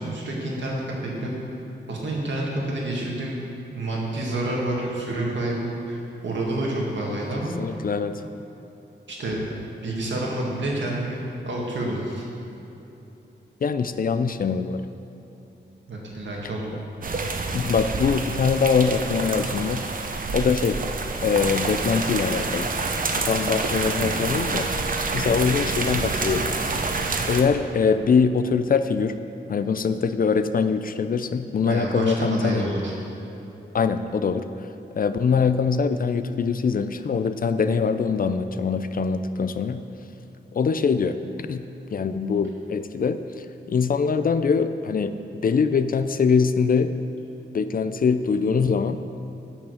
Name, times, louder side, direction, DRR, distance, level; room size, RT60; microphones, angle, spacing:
voice 1, 0.0-1.3 1.9-3.4 3.7-7.6 9.1-9.4 9.8-11.2 11.4-12.3 15.9-16.7 31.6-32.9, right 1 dB, 75° right, -3 dB, 1.9 m, -28 dB
voice 2, 7.6-8.2 13.6-14.8 17.5-19.8 20.3-20.8 21.2-22.7 23.2-24.7 25.1-26.5 27.2-29.2 29.5-32.6 33.7-34.4 35.0-39.8 40.5-41.6 41.9-45.1 45.4-46.9 47.5-49.0, left 5 dB, 50° left, 11 dB, 0.4 m, -23 dB
sound 1, 17.0-27.4, right 3 dB, 45° right, 0.7 m, -27 dB
9.0 x 6.2 x 6.5 m, 3.0 s
wide cardioid pair, 100°, 19 cm